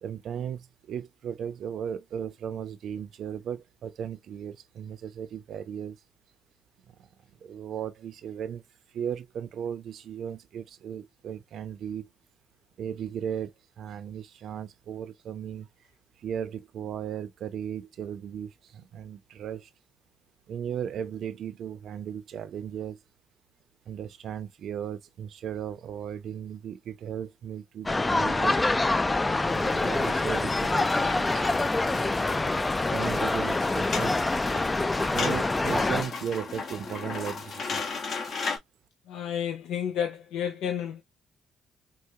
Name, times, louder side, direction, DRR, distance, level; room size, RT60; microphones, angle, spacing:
voice 1, 0.0-6.0 7.0-7.1 7.4-8.6 8.9-12.1 12.8-15.7 16.2-19.7 20.5-23.0 23.9-28.6 29.3-31.5 32.9-34.2 35.1-38.0, right 8 dB, 70° right, 0.6 m, -36 dB
sound 1, 27.9-36.0, left 2 dB, 20° left, 0.3 m, -26 dB
sound 2, 29.5-38.6, left 4 dB, 55° left, 1.2 m, -36 dB
voice 2, 39.1-41.0, left 9 dB, 90° left, 0.5 m, -31 dB
4.7 x 2.1 x 2.7 m
cardioid pair, 90°, 0 cm